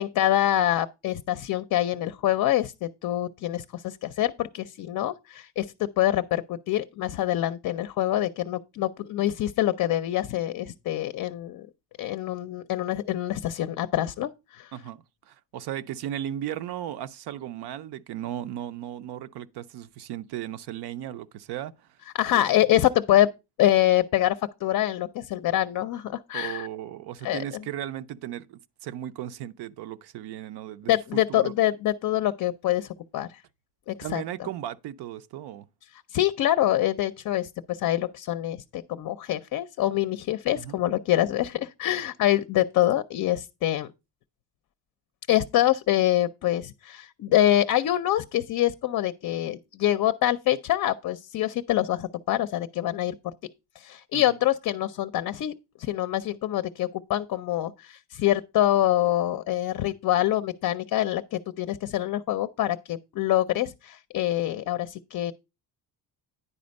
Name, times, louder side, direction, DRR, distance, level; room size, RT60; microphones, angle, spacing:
voice 1, 0.0-11.7 12.0-14.7 22.1-23.3 23.6-26.7 27.2-27.4 30.9-33.4 33.9-34.5 36.1-43.9 45.3-53.3 53.8-55.5 55.8-65.3, left 13 dB, 50° left, 0.5 m, -25 dB
voice 2, 14.7-22.0 22.3-22.7 26.3-31.5 34.0-35.7 40.5-40.8 54.1-54.4, right 11 dB, 70° right, 0.6 m, -36 dB
10.0 x 4.3 x 5.2 m
cardioid pair, 125°, 41 cm